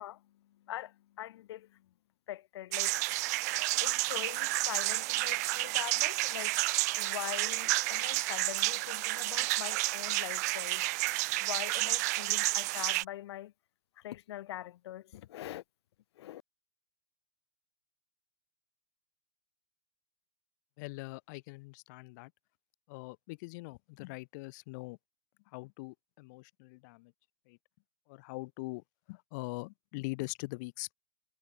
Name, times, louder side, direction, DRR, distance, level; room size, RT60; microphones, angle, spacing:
voice 1, 0.0-1.8 2.3-2.9 3.8-10.8 11.4-13.5 14.0-15.6 16.2-16.4, left 13 dB, 60° left, 1.9 m, -43 dB
sound 1, 2.7-13.0, right 21 dB, 35° right, 0.3 m, -31 dB
voice 2, 20.8-22.3 22.9-25.0 25.5-27.1 27.5-27.6 28.1-30.9, left 26 dB, 40° left, 1.1 m, -42 dB
supercardioid pair, 165°, 15 cm